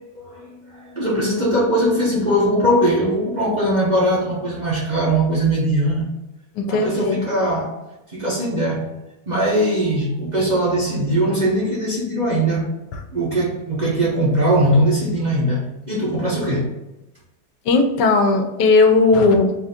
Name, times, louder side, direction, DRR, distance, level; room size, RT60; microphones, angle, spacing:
voice 1, 0.1-6.1 6.7-7.8 8.1-8.9 9.3-12.7 13.1-16.7, right 1 dB, 40° right, -6 dB, 0.6 m, -20 dB
voice 2, 6.6-7.2 12.9-13.0 17.6-19.5, left 3 dB, 80° left, 5 dB, 1.2 m, -16 dB
4.1 x 2.4 x 4.1 m, 0.97 s
omnidirectional pair, 1.9 m